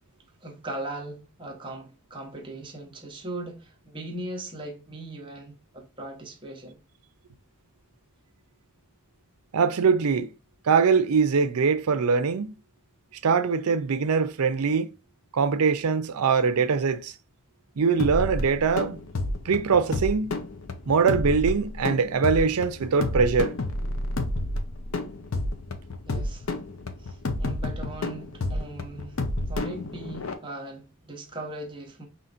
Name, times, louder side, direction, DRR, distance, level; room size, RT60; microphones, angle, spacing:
voice 1, 0.4-6.8 26.1-26.5 27.0-32.1, right 1 dB, 20° right, 0.9 m, -39 dB
voice 2, 9.5-10.3 10.6-12.5 13.2-14.9 15.3-17.1 17.8-19.0 19.4-20.4 20.9-23.5, right 5 dB, 80° right, 0.5 m, -22 dB
sound 1, 18.0-30.3, left 2 dB, 65° left, 0.6 m, -30 dB
5.6 x 3.0 x 2.5 m
head